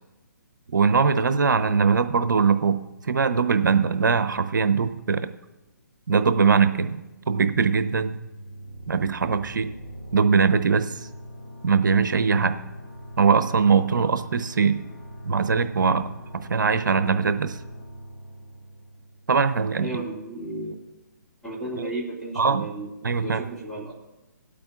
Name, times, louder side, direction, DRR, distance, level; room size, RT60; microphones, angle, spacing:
voice 1, 0.7-5.3 6.1-7.0 7.3-8.2 8.9-9.7 10.1-11.1 11.6-12.6 13.2-14.8 15.2-17.6 19.3-19.9 21.8-21.9 22.4-22.7 23.0-23.4, right 5 dB, 75° right, 10 dB, 0.8 m, -21 dB
sound 1, 8.2-19.6, equal, 25° left, 2.3 m, -42 dB
voice 2, 19.8-20.7 21.4-22.9 23.2-23.9, right 1 dB, 5° left, -7 dB, 2.3 m, -33 dB
22.0 x 8.6 x 2.5 m, 1.0 s
hypercardioid pair, 150°, 10 cm